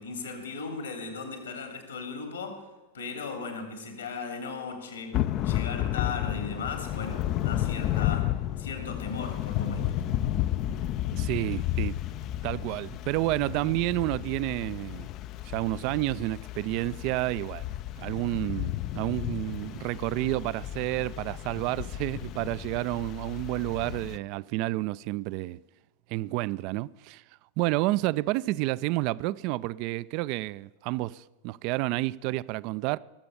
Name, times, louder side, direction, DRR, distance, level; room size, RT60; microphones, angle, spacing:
voice 1, 0.0-2.7 2.9-10.0, left 4 dB, 70° left, 2.9 m, -37 dB
Thunder / Rain, 5.1-24.2, left 13 dB, 35° left, 0.4 m, -32 dB
sound 1, 9.6-12.7, right 7 dB, 70° right, 1.7 m, -46 dB
voice 2, 11.1-11.9 12.4-15.1 15.4-17.6 18.0-25.6 26.1-27.2 27.6-33.0, right 18 dB, 45° right, 0.3 m, -30 dB
19.0 x 7.7 x 7.0 m
figure-of-eight pair, 90°, 0 cm